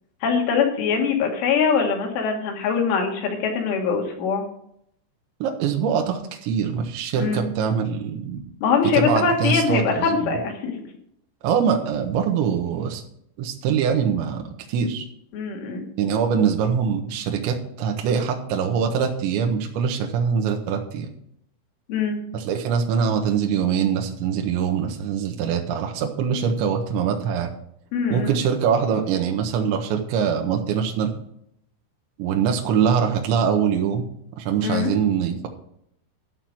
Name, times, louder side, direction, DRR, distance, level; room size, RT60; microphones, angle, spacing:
voice 1, 0.2-4.4 7.2-7.5 8.6-10.7 15.3-15.9 21.9-22.2 27.9-28.4 34.6-34.9, left 5 dB, 80° left, 2 dB, 4.5 m, -22 dB
voice 2, 5.4-8.4 8.8-10.4 11.4-13.0 13.4-14.4 14.7-15.1 16.0-21.1 22.3-27.5 28.1-31.1 32.2-34.1 34.4-35.5, right 7 dB, 75° right, 3 dB, 3.2 m, -23 dB
12.0 x 5.7 x 7.7 m, 0.71 s
omnidirectional pair, 5.5 m